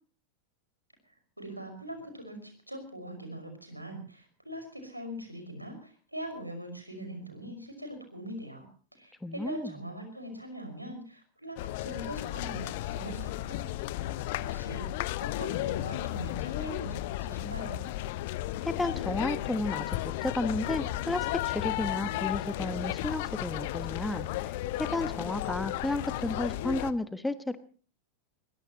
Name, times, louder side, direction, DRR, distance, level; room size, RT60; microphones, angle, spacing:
voice 1, 1.4-8.7 9.0-13.7 14.0-14.2 14.5-14.9 15.2-17.8, right 1 dB, 85° right, 6 dB, 5.7 m, -42 dB
voice 2, 9.2-9.7 18.6-27.6, left 2 dB, 5° left, 13 dB, 1.2 m, -33 dB
sound 1, 11.6-26.9, left 15 dB, 50° left, 0.8 m, -34 dB
22.5 x 21.0 x 3.0 m, 0.39 s
figure-of-eight pair, 90°, 0 cm